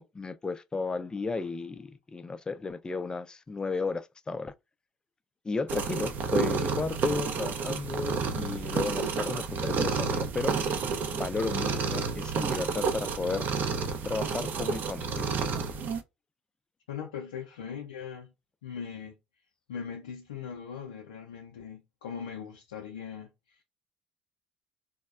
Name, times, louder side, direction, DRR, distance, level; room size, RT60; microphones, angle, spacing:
voice 1, 0.0-4.5 5.4-10.6 11.1-13.5 14.0-15.3, left 4 dB, 20° left, 0.3 m, -34 dB
sound 1, 5.7-16.0, right 5 dB, 55° right, 0.5 m, -30 dB
voice 2, 16.9-18.3 18.6-19.1 19.7-23.6, left 7 dB, 90° left, 0.4 m, -40 dB
3.3 x 2.0 x 2.3 m
hypercardioid pair, 65°, 4 cm